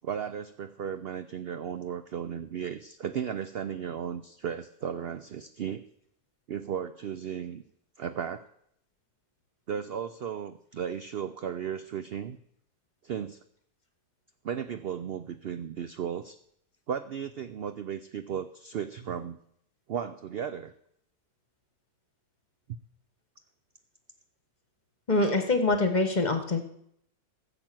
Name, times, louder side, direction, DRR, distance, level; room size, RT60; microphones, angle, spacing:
voice 1, 0.0-5.8 6.5-7.6 8.0-8.4 9.7-12.4 13.0-13.4 14.4-16.4 16.9-19.4 19.9-20.7, right 8 dB, 65° right, 11 dB, 0.6 m, -35 dB
voice 2, 25.1-26.6, left 2 dB, 30° left, 7 dB, 1.2 m, -24 dB
15.0 x 6.9 x 7.6 m, 0.72 s
omnidirectional pair, 1.6 m